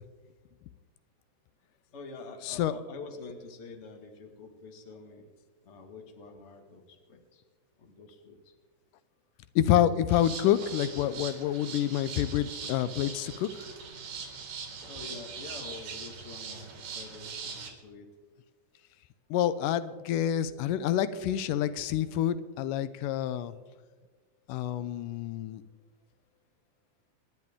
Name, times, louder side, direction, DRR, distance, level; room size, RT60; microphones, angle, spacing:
voice 1, 1.9-5.3 5.6-7.4 7.8-8.4 14.9-18.1, left 4 dB, 30° left, 3 dB, 1.3 m, -46 dB
voice 2, 9.6-13.5 19.3-23.5 24.5-25.6, left 11 dB, 85° left, 14 dB, 2.2 m, -27 dB
sound 1, 10.1-17.7, right 5 dB, 90° right, 3.7 m, -41 dB
26.5 x 10.5 x 3.6 m, 1.4 s
omnidirectional pair, 3.7 m